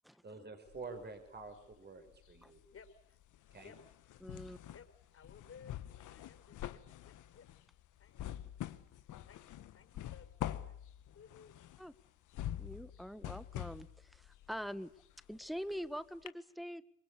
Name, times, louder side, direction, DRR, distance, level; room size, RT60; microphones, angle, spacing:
voice 1, 0.2-2.6 3.5-3.7, right 4 dB, 35° right, 7 dB, 5.4 m, -48 dB
sound 1, 0.7-1.8 2.1-15.9 16.3-16.4, left 12 dB, 80° left, 1.4 m, -46 dB
voice 2, 2.7-3.2 3.6-4.0 4.7-4.9 5.1-5.8 6.0-7.5 8.0-8.3 9.0-10.7 11.1-11.6, left 6 dB, 50° left, 8 dB, 5.2 m, -59 dB
voice 3, 4.2-4.6 11.8-11.9 12.6-14.9 15.3-16.8, equal, ahead, 14 dB, 1.4 m, -44 dB
26.0 x 22.5 x 8.5 m, 0.68 s
cardioid pair, 90°, 30 cm